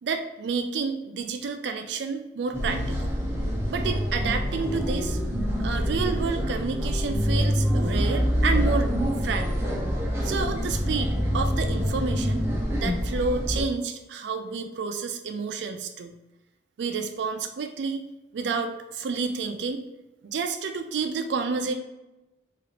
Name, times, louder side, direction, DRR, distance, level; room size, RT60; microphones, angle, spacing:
voice 1, 0.0-3.1 3.7-5.2 5.6-8.9 9.2-9.6 10.2-12.5 12.8-16.2 16.8-18.1 18.3-19.9 20.2-21.7, right 5 dB, 70° right, 7 dB, 0.3 m, -30 dB
sound 1, 2.5-13.6, equal, 15° right, 0.6 m, -26 dB
3.1 x 2.4 x 2.9 m, 0.98 s
head